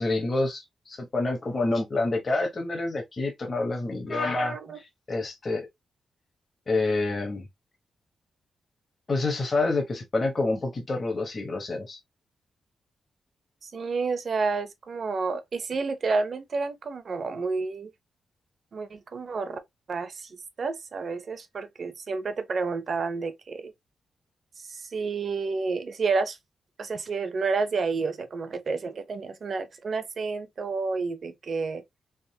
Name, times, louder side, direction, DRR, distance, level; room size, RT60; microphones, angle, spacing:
voice 1, 0.0-5.7 6.7-7.5 9.1-12.0, left 2 dB, 35° left, 0.9 m, -28 dB
voice 2, 4.4-4.8 13.6-17.9 18.7-19.6 19.9-23.7 24.6-26.4 26.8-31.8, right 4 dB, 50° right, 0.7 m, -30 dB
3.6 x 2.6 x 2.7 m
wide cardioid pair, 120°, 0 cm